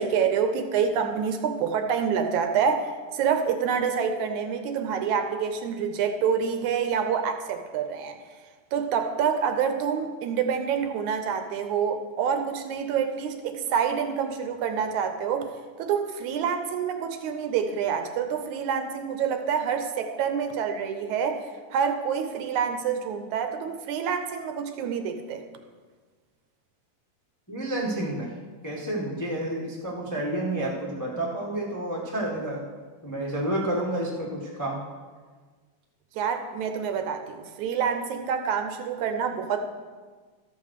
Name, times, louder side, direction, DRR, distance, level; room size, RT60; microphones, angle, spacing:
voice 1, 0.0-8.2 8.7-25.4 36.1-39.7, right 7 dB, 75° right, 7 dB, 2.1 m, -27 dB
voice 2, 27.5-28.3 28.6-32.6 33.0-34.8, right 1 dB, 25° left, -3 dB, 0.4 m, -30 dB
13.5 x 5.5 x 6.5 m, 1.5 s
omnidirectional pair, 3.6 m